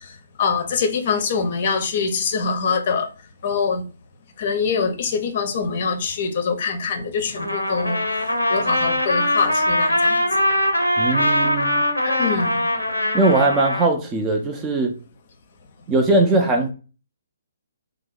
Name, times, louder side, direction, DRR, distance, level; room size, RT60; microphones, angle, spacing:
voice 1, 0.0-3.1 3.4-3.9 4.4-10.2 12.0-12.6, left 5 dB, 40° left, 0.6 m, -24 dB
Trumpet, 7.4-13.9, left 1 dB, 85° left, 0.6 m, -21 dB
voice 2, 11.0-11.9 13.1-15.0 15.9-16.7, right 2 dB, 15° right, 0.4 m, -20 dB
2.7 x 2.0 x 3.8 m
figure-of-eight pair, 130°, 0 cm